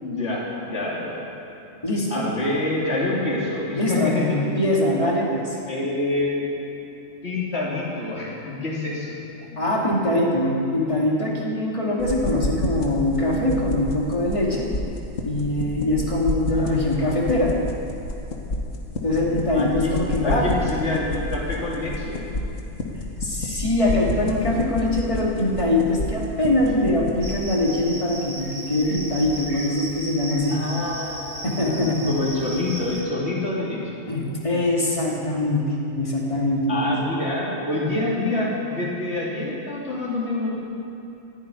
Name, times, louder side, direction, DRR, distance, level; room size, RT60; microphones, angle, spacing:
voice 1, 0.0-1.3 2.1-4.5 5.7-6.5 7.2-9.2 16.5-17.0 19.5-19.9 20.2-22.2 30.5-34.1 36.7-40.6, left 2 dB, 55° left, -5 dB, 3.4 m, -27 dB
voice 2, 1.8-2.2 3.8-5.6 9.6-14.7 15.2-17.6 19.0-20.6 23.2-30.6 31.4-32.2 34.1-37.0, left 1 dB, 25° left, -3 dB, 2.6 m, -23 dB
sound 1, 12.0-27.3, left 2 dB, 80° left, 2.0 m, -30 dB
Cricket, 27.2-33.0, right 1 dB, 45° right, 2.7 m, -36 dB
15.0 x 9.3 x 9.9 m, 2.8 s
omnidirectional pair, 1.3 m